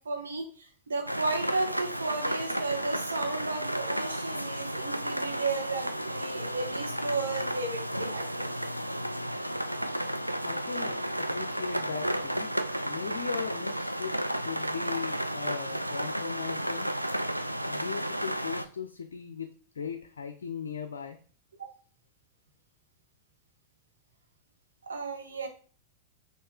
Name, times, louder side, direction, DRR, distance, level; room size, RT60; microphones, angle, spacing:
voice 1, 0.0-8.7 21.6-21.7 24.8-25.5, right 3 dB, 70° right, 3 dB, 1.0 m, -34 dB
sound 1, 1.1-18.6, equal, 90° right, 0.3 m, -33 dB
voice 2, 10.4-11.0 11.3-12.5 12.8-16.9 17.7-19.5 19.8-21.2, left 6 dB, 70° left, 8 dB, 0.4 m, -38 dB
5.5 x 2.7 x 3.4 m, 0.41 s
figure-of-eight pair, 90°, 0 cm